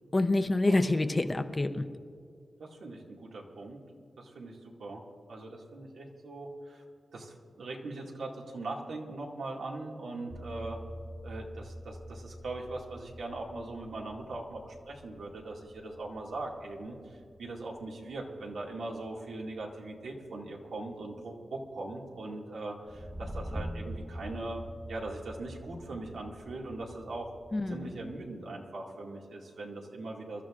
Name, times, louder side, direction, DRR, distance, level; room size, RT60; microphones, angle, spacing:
voice 1, 0.1-1.9 27.5-27.9, left 2 dB, 25° left, 8 dB, 0.7 m, -27 dB
voice 2, 2.6-3.8 4.2-5.0 5.3-6.8 7.1-10.8 11.2-24.6 24.9-27.3 27.7-30.4, right 2 dB, 90° right, -2 dB, 2.2 m, -40 dB
sound 1, 10.3-28.3, equal, 10° right, 1.4 m, -46 dB
26.5 x 13.0 x 2.5 m, 2.2 s
wide cardioid pair, 100°, 0 cm